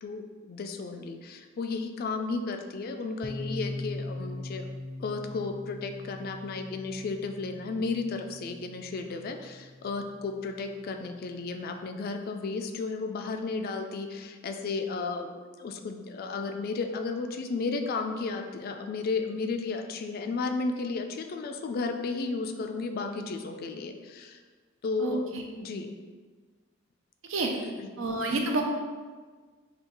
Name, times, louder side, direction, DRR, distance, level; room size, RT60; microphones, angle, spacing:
voice 1, 0.0-4.6 5.0-15.3 15.6-24.4 24.8-25.2 25.6-25.9 27.5-27.9, left 4 dB, 45° left, 6 dB, 0.3 m, -33 dB
sound 1, 3.2-10.9, left 2 dB, 5° right, 0.5 m, -41 dB
voice 2, 28.0-28.6, right 2 dB, 70° right, 2 dB, 0.6 m, -28 dB
5.5 x 2.3 x 3.0 m, 1.4 s
head